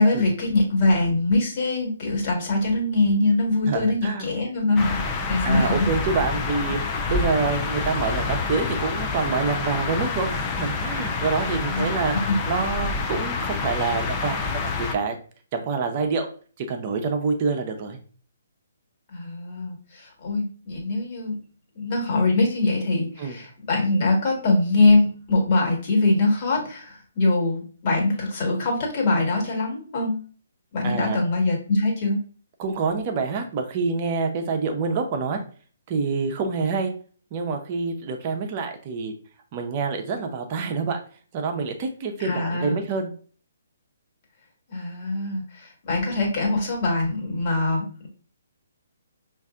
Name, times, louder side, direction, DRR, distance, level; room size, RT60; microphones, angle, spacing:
voice 1, 0.0-5.0 5.3-5.9 11.5-12.3 19.1-21.4 21.7-30.2 30.7-32.2 42.2-42.8 44.7-48.1, left 2 dB, 40° left, 0 dB, 1.6 m, -23 dB
voice 2, 3.7-4.3 5.4-12.1 12.5-15.1 15.5-16.3 16.6-18.0 23.2-23.4 30.8-31.2 32.6-35.4 35.9-36.9 37.3-39.1 39.5-41.0 41.3-43.1, right 4 dB, 35° right, 5 dB, 0.7 m, -26 dB
sound 1, 4.8-14.9, left 4 dB, 25° left, 0.5 m, -27 dB
5.3 x 2.6 x 2.4 m, 0.41 s
figure-of-eight pair, 140°, 0 cm